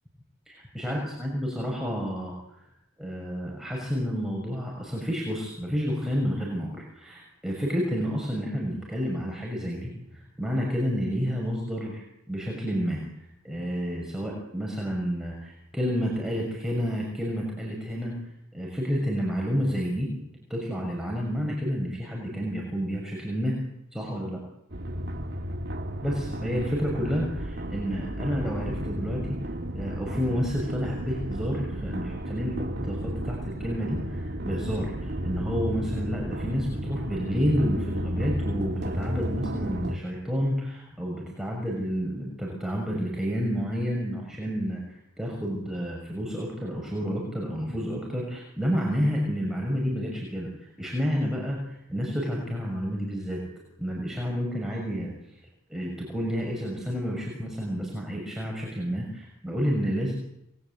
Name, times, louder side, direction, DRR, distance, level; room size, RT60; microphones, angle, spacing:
voice 1, 0.5-2.6 3.0-13.0 13.4-18.1 18.5-20.1 20.5-23.6 23.9-24.4 26.0-29.3 29.7-44.8 45.2-50.5 50.8-53.4 53.8-55.1 55.7-60.1, equal, ahead, -2 dB, 6.3 m, -30 dB
sound 1, 24.7-40.0, equal, 50° right, 2.8 m, -33 dB
28.5 x 21.5 x 8.5 m, 0.82 s
head